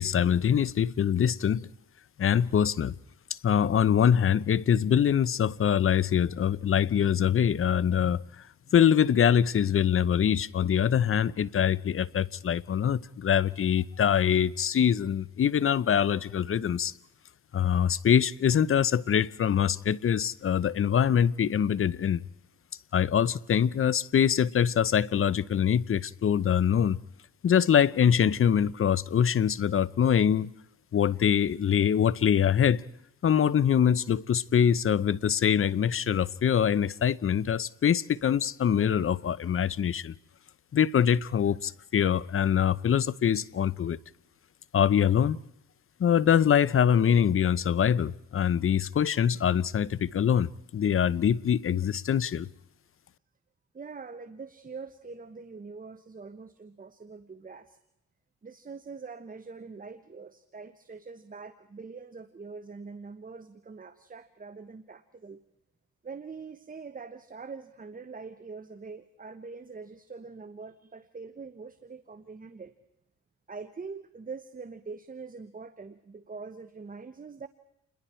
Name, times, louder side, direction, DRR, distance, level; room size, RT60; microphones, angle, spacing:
voice 1, 0.0-1.7 2.2-2.9 3.3-8.2 8.7-16.9 17.5-22.2 22.9-27.0 27.4-30.5 30.9-32.8 33.2-40.1 40.7-44.0 44.7-45.4 46.0-52.5, left 8 dB, 45° left, 0.7 m, -24 dB
voice 2, 53.7-57.8 58.4-65.4 66.0-72.7 73.5-77.5, right 4 dB, 30° right, 1.1 m, -43 dB
28.5 x 21.5 x 4.4 m
cardioid pair, 90°, 30 cm